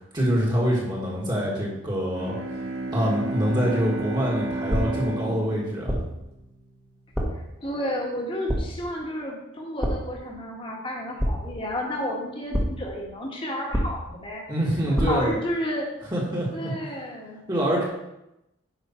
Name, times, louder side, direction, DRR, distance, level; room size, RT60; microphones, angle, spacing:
voice 1, 0.0-2.4 2.9-6.0 14.5-15.4 16.1-16.7 17.5-17.8, equal, 20° right, -5 dB, 1.8 m, -25 dB
Bowed string instrument, 2.0-6.9, right 2 dB, 85° right, 2.1 m, -32 dB
sound 1, 4.7-5.2 5.9-6.3 7.1-7.5 8.5-8.9 9.8-10.2 11.2-11.8 12.5-13.0 13.7-14.3 15.0-15.4, equal, ahead, 1.3 m, -27 dB
voice 2, 7.6-14.4 14.9-15.9 16.5-17.4, equal, 25° left, -1 dB, 1.6 m, -31 dB
9.4 x 5.5 x 4.4 m, 0.90 s
head